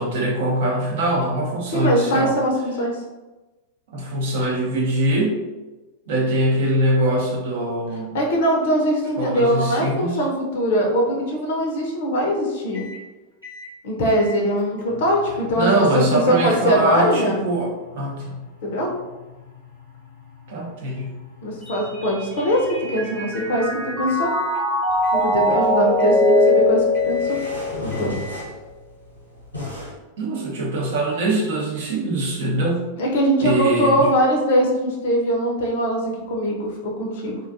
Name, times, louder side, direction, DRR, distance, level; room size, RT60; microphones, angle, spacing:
voice 1, 0.0-2.3 3.9-5.4 6.1-8.2 9.2-10.2 15.5-18.4 20.5-21.2 30.2-32.8 33.4-34.1, right 1 dB, 55° right, -2 dB, 0.6 m, -22 dB
voice 2, 1.7-3.0 8.1-12.9 13.8-17.4 18.6-18.9 21.4-23.7 24.0-24.3 25.1-27.4 27.8-28.2 33.0-37.4, equal, 55° left, 0 dB, 0.5 m, -21 dB
sound 1, 12.7-13.0 13.4-13.7 14.1-24.6 25.0-25.6 26.0-26.5 26.9-27.5 27.9-28.4, left 4 dB, 80° right, 1.1 m, -43 dB
Mallet percussion, 21.7-28.1, left 1 dB, 10° right, 0.5 m, -21 dB
sound 2, 24.9-30.0, left 1 dB, 85° left, 0.8 m, -36 dB
2.5 x 2.3 x 2.4 m, 1.1 s
figure-of-eight pair, 90°, 0 cm